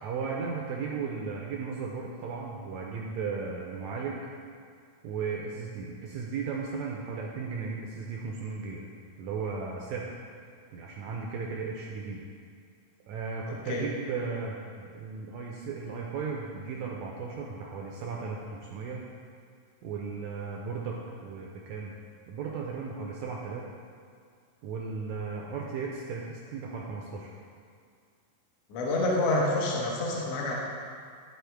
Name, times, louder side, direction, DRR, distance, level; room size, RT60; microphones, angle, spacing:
voice 1, 0.0-4.3 5.0-8.9 9.2-10.2 10.7-12.2 13.1-19.1 19.8-21.9 22.3-23.7 24.6-27.3, right 5 dB, 80° right, -2 dB, 1.7 m, -35 dB
voice 2, 28.7-30.5, left 2 dB, 65° left, -3 dB, 1.6 m, -27 dB
12.0 x 4.3 x 3.4 m, 2.2 s
omnidirectional pair, 3.8 m